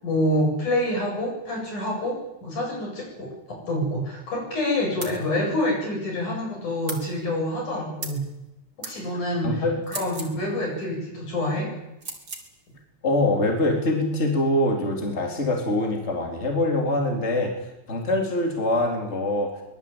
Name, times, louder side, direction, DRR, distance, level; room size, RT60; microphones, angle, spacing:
voice 1, 0.0-8.2 8.8-11.7, left 1 dB, 75° left, 0 dB, 9.5 m, -27 dB
sound 1, 5.0-5.2 6.9-7.1 8.0-8.2 8.8-9.0 9.8-10.4 12.0-12.5, right 3 dB, 35° right, 3.7 m, -35 dB
voice 2, 9.4-9.8 13.0-17.5 17.9-19.5, left 1 dB, 20° left, 1 dB, 4.2 m, -24 dB
24.5 x 20.5 x 8.9 m, 0.93 s
omnidirectional pair, 3.5 m